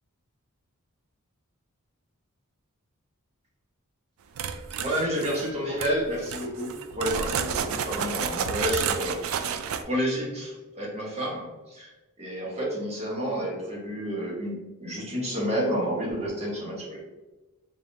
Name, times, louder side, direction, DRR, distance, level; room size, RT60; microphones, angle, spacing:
sound 1, 4.3-5.5 5.8-5.9 6.3-9.8, right 7 dB, 70° right, 0.3 m, -30 dB
voice 1, 4.7-9.2 9.5-11.9 12.2-17.0, equal, 30° right, -4 dB, 1.1 m, -30 dB
3.7 x 3.5 x 2.7 m, 1.1 s
head